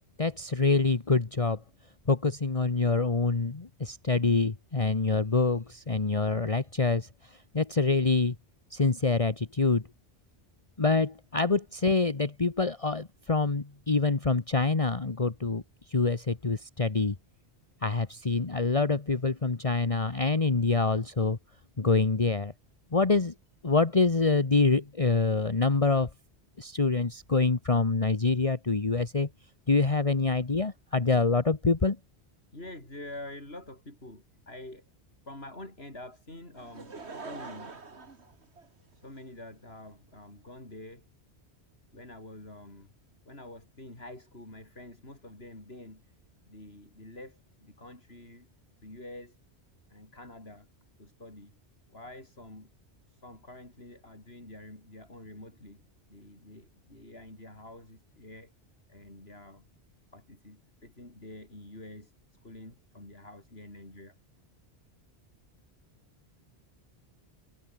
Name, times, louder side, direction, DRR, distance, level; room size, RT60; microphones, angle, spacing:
voice 1, 0.2-1.6 2.1-7.1 7.5-8.3 8.7-9.8 10.8-15.6 15.9-17.2 17.8-21.4 21.8-22.5 22.9-23.3 23.6-26.1 26.6-29.3 29.7-32.0, left 3 dB, 30° left, 1.4 m, -26 dB
voice 2, 32.5-34.9 35.3-37.7 38.9-41.1 41.9-42.9 43.3-46.1 46.5-48.5 48.8-49.4 49.9-50.7 51.0-51.6 51.9-52.7 53.1-58.5 58.9-59.6 60.1-64.2, left 1 dB, 65° left, 6.3 m, -47 dB
Laughter / Crowd, 36.6-39.2 39.9-40.0, right 4 dB, 75° right, 2.6 m, -44 dB
omnidirectional pair, 1.1 m